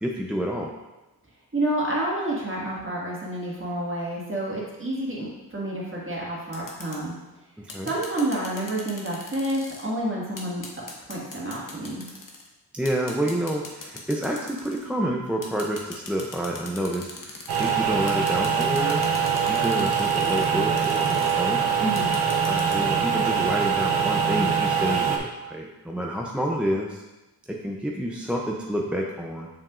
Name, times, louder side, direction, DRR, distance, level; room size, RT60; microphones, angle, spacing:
voice 1, 0.0-0.7 7.6-7.9 12.7-19.1 19.5-21.6 22.5-27.0 27.5-29.5, equal, 5° right, -2 dB, 0.5 m, -29 dB
voice 2, 1.5-7.1 7.8-10.6 11.1-12.0 21.8-22.1, right 1 dB, 30° right, -5 dB, 1.7 m, -29 dB
sound 1, 6.5-7.0 7.7-9.9 10.4-12.5 12.8-14.9 15.4-17.7 18.1-20.5 20.8-21.3 22.0-22.8, left 3 dB, 55° left, 1.0 m, -40 dB
sound 2, 17.5-25.2, right 7 dB, 80° right, 0.8 m, -23 dB
7.0 x 5.8 x 2.4 m, 1.1 s
wide cardioid pair, 120°, 38 cm